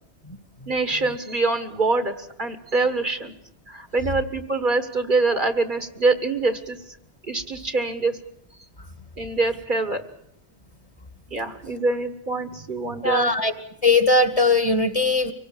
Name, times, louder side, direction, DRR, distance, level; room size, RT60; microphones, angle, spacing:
voice 1, 0.7-3.3 3.7-6.8 7.3-8.2 9.2-10.0 11.3-13.3, right 3 dB, 50° right, 10 dB, 1.7 m, -24 dB
voice 2, 13.0-13.5 13.8-15.3, left 2 dB, 35° left, 10 dB, 2.0 m, -19 dB
25.0 x 18.0 x 8.8 m, 0.71 s
omnidirectional pair, 1.1 m